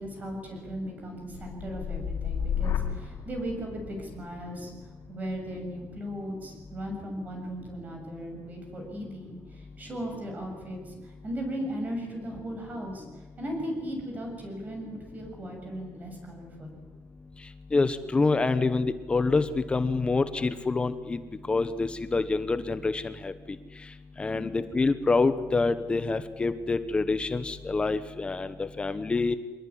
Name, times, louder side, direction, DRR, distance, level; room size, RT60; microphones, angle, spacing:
voice 1, 0.0-4.7 5.1-13.0 13.4-16.7 24.3-24.7, equal, 30° right, 2 dB, 7.3 m, -37 dB
sound 1, 1.0-9.1 9.5-10.0, left 8 dB, 55° left, 3.7 m, -36 dB
voice 2, 17.7-21.2 21.5-23.3 24.2-29.4, left 3 dB, 20° left, 11 dB, 1.0 m, -26 dB
25.5 x 20.0 x 9.9 m, 1.3 s
cardioid pair, 165°, 6 cm